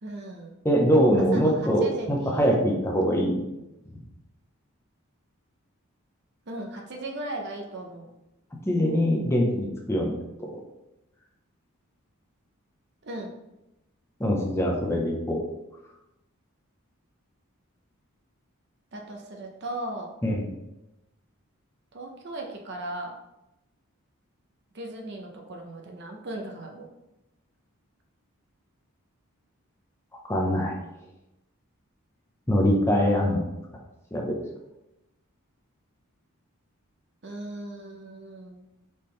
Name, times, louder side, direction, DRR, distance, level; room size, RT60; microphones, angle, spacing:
voice 1, 0.0-0.5 1.1-2.7 6.5-8.1 13.0-13.3 18.9-20.1 21.9-23.1 24.7-26.9 37.2-38.7, right 1 dB, 50° right, 2 dB, 0.7 m, -37 dB
voice 2, 0.6-3.4 8.7-10.1 14.2-15.4 20.2-20.5 30.2-30.7 32.5-33.4 34.1-34.3, equal, 10° left, -2 dB, 0.6 m, -23 dB
4.2 x 3.6 x 3.2 m, 0.91 s
head